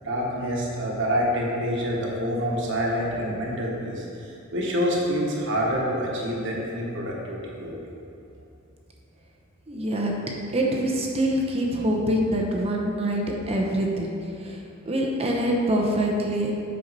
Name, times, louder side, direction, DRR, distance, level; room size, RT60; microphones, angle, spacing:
voice 1, 0.0-4.1 4.5-7.8, equal, 60° right, -3 dB, 1.3 m, -27 dB
voice 2, 9.7-10.1 10.5-14.1 14.4-14.6 14.8-16.5, right 1 dB, 30° right, -1 dB, 0.8 m, -25 dB
8.1 x 5.7 x 4.0 m, 2.6 s
head